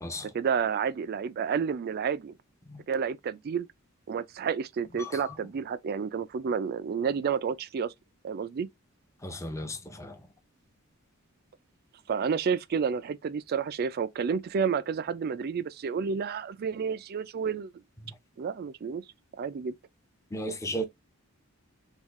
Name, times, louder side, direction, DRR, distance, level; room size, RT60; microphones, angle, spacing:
voice 1, 0.2-2.4 2.9-3.7 4.1-7.9 8.2-8.7 12.1-17.7 18.4-19.0 19.4-19.7, right 6 dB, 45° right, 0.3 m, -30 dB
voice 2, 5.0-5.3 9.2-10.2 18.1-18.2 20.3-20.8, equal, 15° left, 0.6 m, -35 dB
3.5 x 2.3 x 3.0 m
head